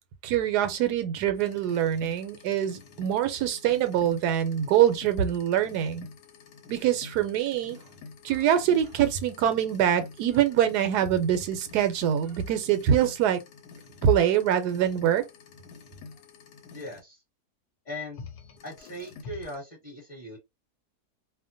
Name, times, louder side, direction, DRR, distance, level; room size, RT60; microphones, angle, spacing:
voice 1, 0.2-6.1 6.7-7.8 8.2-13.4 14.0-15.2, right 10 dB, 85° right, 1.1 m, -24 dB
sound 1, 1.4-17.0 18.1-19.6, left 5 dB, 90° left, 1.2 m, -48 dB
voice 2, 16.7-17.2 17.8-18.2 18.6-20.4, left 1 dB, 30° left, 1.1 m, -39 dB
2.8 x 2.1 x 2.5 m
omnidirectional pair, 1.7 m